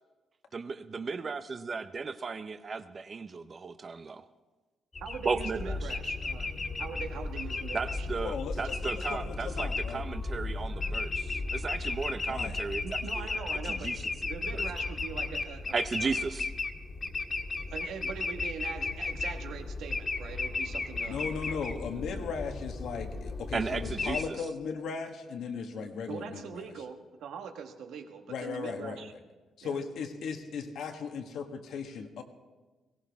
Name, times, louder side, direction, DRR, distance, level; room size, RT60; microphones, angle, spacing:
voice 1, 0.5-4.3 5.2-5.9 7.7-13.3 13.7-14.1 14.5-14.6 15.7-16.5 23.5-24.4, right 4 dB, 40° right, 10 dB, 0.6 m, -35 dB
sound 1, 4.9-24.2, left 3 dB, 40° left, 1.9 m, -35 dB
voice 2, 5.0-8.3 12.8-13.9 14.2-16.2 17.7-21.7 26.1-29.1 29.6-29.8, right 6 dB, 80° right, 5 dB, 1.4 m, -42 dB
voice 3, 8.2-10.0 12.3-12.6 21.1-26.7 28.3-29.1 29.6-32.2, left 5 dB, 75° left, 5 dB, 1.5 m, -37 dB
18.5 x 16.5 x 3.5 m, 1.2 s
cardioid pair, 75°, 0 cm